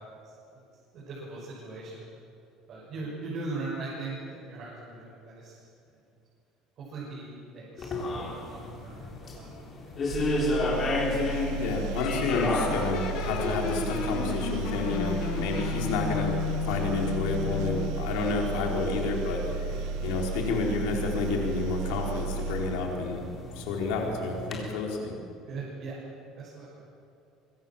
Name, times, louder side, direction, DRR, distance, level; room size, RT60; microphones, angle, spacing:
voice 1, 0.9-2.0 2.7-6.0 6.8-9.5 9.7-10.0 23.8-23.9 25.5-26.0 26.3-26.8, right 3 dB, 35° right, -6 dB, 6.4 m, -40 dB
sound 1, 7.8-24.6, left 2 dB, 25° left, 4.0 m, -35 dB
sound 2, 10.1-23.5, right 5 dB, 65° right, 1.7 m, -34 dB
voice 2, 11.6-16.3 16.6-19.8 20.0-23.2 23.5-25.2, left 3 dB, 80° left, 0 dB, 4.7 m, -30 dB
sound 3, 12.0-18.0, left 8 dB, 50° left, 1.7 m, -34 dB
25.0 x 24.0 x 7.5 m, 2.6 s
cardioid pair, 180°, 0 cm